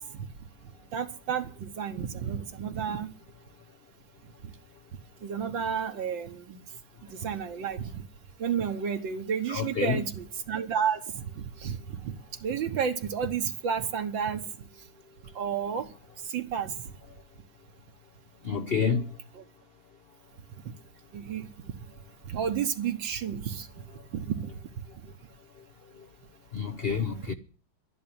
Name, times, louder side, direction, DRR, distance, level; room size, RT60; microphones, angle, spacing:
voice 1, 0.9-3.1 5.2-6.6 7.1-8.0 8.4-12.1 12.4-14.4 15.4-15.9 16.3-16.7 19.3-19.4 21.1-21.5 22.3-23.7 24.1-24.4 26.9-27.3, right 7 dB, 75° right, 1.9 m, -31 dB
voice 2, 9.5-10.0 18.4-19.1 26.5-27.3, left 6 dB, 65° left, 0.5 m, -28 dB
11.5 x 11.0 x 8.7 m
omnidirectional pair, 2.1 m